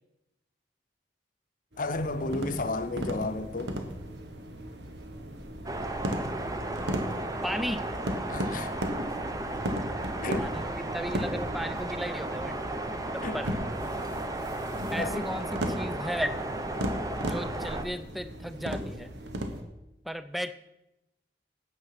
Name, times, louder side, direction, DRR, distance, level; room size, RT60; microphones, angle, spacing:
sound 1, 1.7-19.6, equal, 75° right, 1.2 m, -37 dB
voice 1, 1.8-3.8 8.3-8.8 10.2-10.5 13.2-13.4 15.0-15.3 15.8-16.0, left 2 dB, 50° left, 0.7 m, -32 dB
sound 2, 5.6-17.8, right 1 dB, 20° right, 0.8 m, -34 dB
voice 2, 7.4-7.8 10.4-12.6 13.1-13.5 14.9-16.4 17.2-19.1 20.0-20.5, equal, ahead, 0.4 m, -35 dB
9.0 x 7.8 x 5.9 m
head